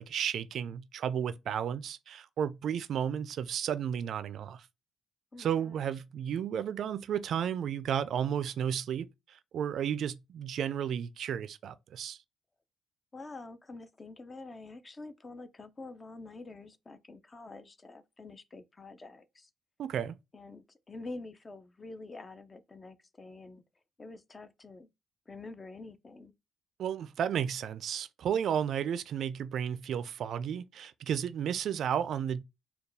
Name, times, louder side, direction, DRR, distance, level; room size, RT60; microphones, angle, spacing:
voice 1, 0.0-4.7 5.4-12.2 19.8-20.2 26.8-32.4, right 8 dB, 70° right, 0.3 m, -33 dB
voice 2, 5.3-5.8 13.1-19.5 20.3-23.6 24.0-24.9 25.3-26.3, left 3 dB, 30° left, 0.4 m, -47 dB
4.2 x 2.3 x 3.4 m
cardioid pair, 90°, 0 cm